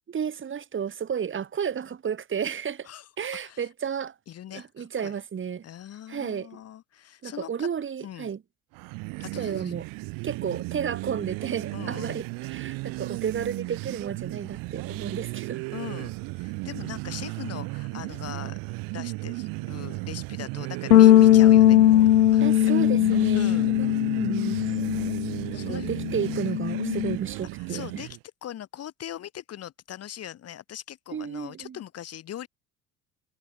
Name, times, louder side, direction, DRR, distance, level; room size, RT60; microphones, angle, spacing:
voice 1, 0.1-2.9 3.2-4.1 4.5-5.6 6.1-6.6 7.2-8.4 9.3-9.9 10.2-15.6 22.4-23.4 23.8-24.7 25.5-28.0 31.1-31.8, right 7 dB, 30° right, 3.3 m, -32 dB
voice 2, 4.3-5.1 5.6-7.7 8.0-8.3 9.2-9.7 11.7-12.2 15.7-22.0 22.3-22.6 23.0-23.7 25.5-25.9 27.6-32.5, left 11 dB, 35° left, 1.7 m, -41 dB
sound 1, 8.7-28.2, right 27 dB, 50° right, 1.4 m, -35 dB
sound 2, 20.9-25.5 25.7-27.2, left 12 dB, 85° left, 0.5 m, -19 dB
figure-of-eight pair, 65°, 43 cm